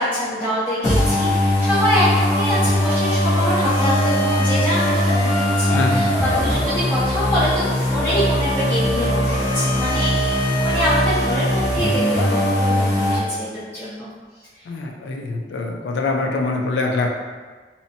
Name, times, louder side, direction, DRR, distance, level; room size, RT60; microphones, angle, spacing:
voice 1, 0.0-14.1, equal, 10° left, -13 dB, 0.6 m, -25 dB
sound 1, 0.8-13.2, equal, 45° left, 1.0 m, -20 dB
voice 2, 5.7-6.0 14.7-17.1, left 3 dB, 80° left, 1 dB, 0.4 m, -24 dB
2.8 x 2.1 x 2.7 m, 1.4 s
head